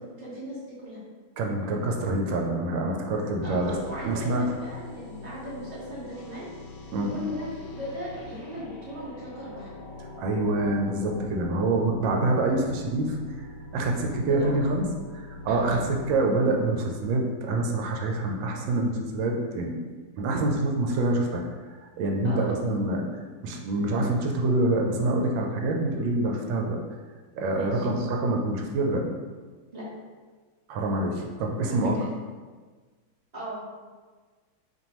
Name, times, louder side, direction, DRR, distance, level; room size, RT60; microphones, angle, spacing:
voice 1, 0.2-1.0 3.4-6.5 6.8-7.5 7.7-9.7 14.3-14.5 15.5-15.8 22.2-22.5 27.5-27.8 29.7-29.8 31.6-32.1 33.3-33.6, equal, 25° right, -9 dB, 1.2 m, -37 dB
voice 2, 1.4-3.8 4.0-4.6 6.9-7.1 10.2-13.4 13.7-14.9 15.1-19.8 20.2-21.4 22.0-23.0 23.4-26.8 27.3-29.0 30.7-32.0, right 2 dB, 85° right, 1 dB, 1.3 m, -26 dB
sound 1, 3.4-17.5, left 3 dB, 75° left, 1.2 m, -43 dB
4.4 x 2.9 x 3.0 m, 1.4 s
omnidirectional pair, 2.0 m